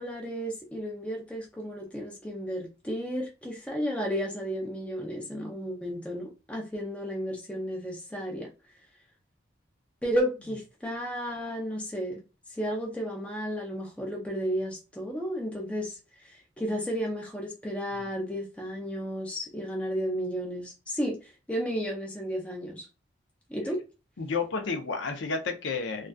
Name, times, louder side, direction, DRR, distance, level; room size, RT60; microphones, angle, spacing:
voice 1, 0.0-8.5 10.0-12.2 12.5-22.9 23.5-23.8, equal, 5° left, 0.4 m, -33 dB
voice 2, 24.2-26.1, left 4 dB, 80° left, 0.6 m, -31 dB
2.5 x 2.3 x 2.2 m
head